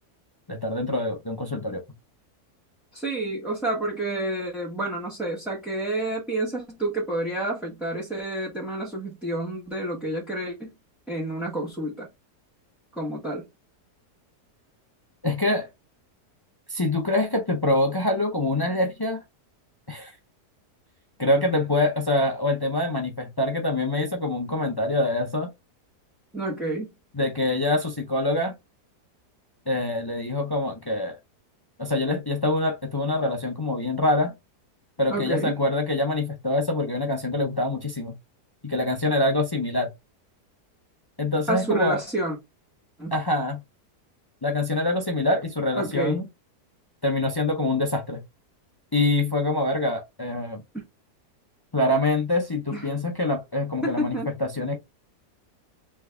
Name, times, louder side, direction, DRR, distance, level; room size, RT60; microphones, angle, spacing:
voice 1, 0.5-1.8 15.2-15.7 16.7-19.2 19.9-20.1 21.2-25.5 27.1-28.5 29.7-31.2 31.8-34.3 35.0-38.1 38.6-39.9 41.2-42.0 43.1-43.6 44.4-46.3 47.0-48.2 48.9-50.6 51.7-54.8, left 2 dB, 40° left, 0.3 m, -25 dB
voice 2, 2.9-10.7 11.1-12.1 12.9-13.4 26.3-26.9 35.1-35.6 41.5-42.4 43.0-43.1 45.7-46.2 50.7-50.8 52.7-52.9 53.8-54.3, right 1 dB, ahead, 0.9 m, -29 dB
3.6 x 3.3 x 3.3 m
omnidirectional pair, 1.8 m